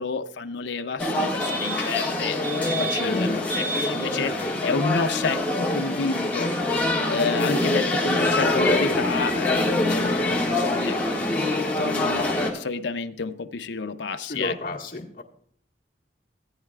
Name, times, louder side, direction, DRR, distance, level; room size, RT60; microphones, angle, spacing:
voice 1, 0.0-2.4 2.7-4.3 4.6-6.5 6.9-11.0 11.8-14.5, left 4 dB, 85° left, 8 dB, 0.6 m, -30 dB
sound 1, 1.0-12.5, left 2 dB, 10° left, 1.8 m, -24 dB
voice 2, 3.0-3.4 4.0-4.5 14.2-15.2, left 2 dB, 50° left, -2 dB, 1.6 m, -34 dB
17.0 x 9.7 x 2.4 m, 0.64 s
head